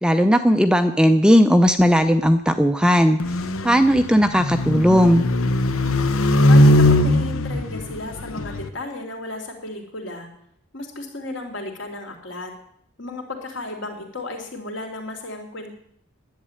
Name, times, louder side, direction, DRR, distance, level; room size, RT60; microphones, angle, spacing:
voice 1, 0.0-3.2 3.6-5.2, equal, 5° right, 8 dB, 0.5 m, -16 dB
sound 1, 3.2-8.7, left 1 dB, 75° left, 0.9 m, -19 dB
voice 2, 6.5-10.3 10.7-12.5 13.0-15.7, left 2 dB, 60° left, 3 dB, 3.1 m, -34 dB
11.0 x 8.2 x 9.8 m, 0.69 s
head